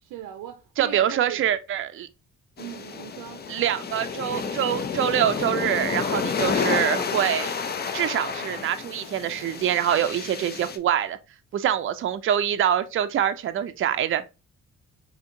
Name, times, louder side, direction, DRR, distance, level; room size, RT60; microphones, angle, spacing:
voice 1, 0.0-1.5 2.6-3.5, right 10 dB, 90° right, 0.6 m, -39 dB
voice 2, 0.8-2.1 3.5-7.5 7.9-11.2 11.5-14.2, right 10 dB, 45° right, 0.5 m, -25 dB
sound 1, 2.6-10.8, left 5 dB, 35° left, 0.5 m, -30 dB
4.4 x 2.8 x 2.6 m
cardioid pair, 80°, 30 cm